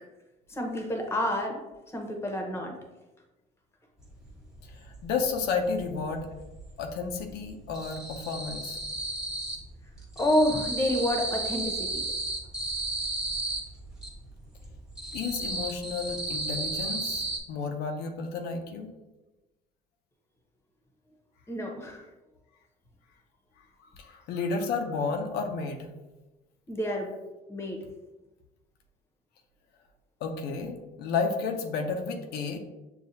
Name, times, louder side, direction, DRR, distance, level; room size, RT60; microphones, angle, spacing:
voice 1, 0.5-1.6 1.9-2.7 10.2-12.0 21.5-22.0 26.7-27.1 27.5-27.8, left 1 dB, 15° left, 2 dB, 0.9 m, -28 dB
sound 1, 4.2-4.3 4.6-5.8 6.1-6.8 7.0-9.7 10.0-14.1 14.6-17.4, right 2 dB, 5° right, 1.2 m, -33 dB
voice 2, 4.6-6.3 6.8-8.8 15.1-18.9 24.0-25.9 30.2-32.6, left 4 dB, 80° left, 4 dB, 0.6 m, -32 dB
6.7 x 2.3 x 2.7 m, 1.1 s
cardioid pair, 110°, 17 cm